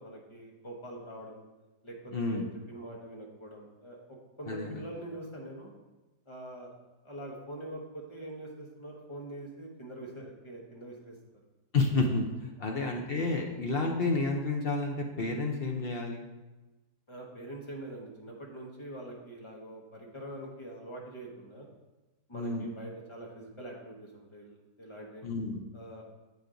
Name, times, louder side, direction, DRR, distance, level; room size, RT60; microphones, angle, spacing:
voice 1, 0.0-1.4 1.8-5.7 6.3-6.7 7.0-11.1 12.6-12.7 17.1-21.7 22.3-25.3 25.7-26.1, right 1 dB, 20° left, -1 dB, 1.1 m, -44 dB
voice 2, 2.1-2.5 4.5-4.8 11.7-16.2 22.3-22.7 25.2-25.6, left 3 dB, 60° left, 1 dB, 0.6 m, -30 dB
7.9 x 5.2 x 3.8 m, 1.1 s
omnidirectional pair, 1.8 m